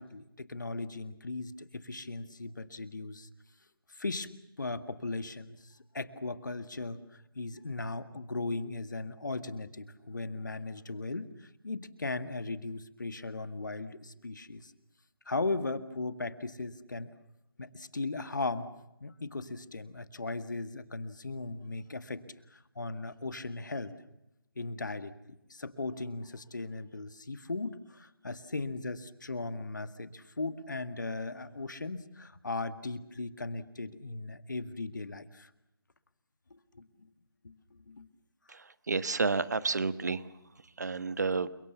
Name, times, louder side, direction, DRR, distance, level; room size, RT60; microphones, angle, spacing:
voice 1, 0.0-3.3 3.9-4.3 4.6-14.7 15.3-17.1 17.6-18.7 19.0-22.2 22.5-23.9 24.6-25.2 25.5-35.5 36.7-36.9 37.4-38.1, left 3 dB, 55° left, 11 dB, 1.9 m, -37 dB
voice 2, 38.9-40.2 40.8-41.5, right 4 dB, 50° right, 14 dB, 1.3 m, -30 dB
30.0 x 24.0 x 7.1 m, 0.86 s
figure-of-eight pair, 155°, 12 cm